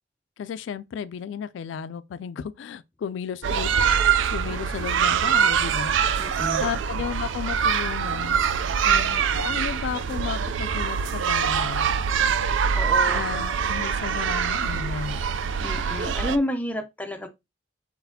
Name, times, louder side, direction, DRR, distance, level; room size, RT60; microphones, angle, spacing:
voice 1, 0.4-3.7 4.3-5.9 6.3-8.4 8.9-11.9 13.1-15.2, left 7 dB, 75° left, 0.3 m, -34 dB
sound 1, 3.4-16.4, right 7 dB, 85° right, 0.4 m, -24 dB
voice 2, 6.2-6.6 12.7-13.2 15.6-17.3, left 1 dB, 10° left, 0.6 m, -30 dB
4.4 x 4.0 x 2.7 m
head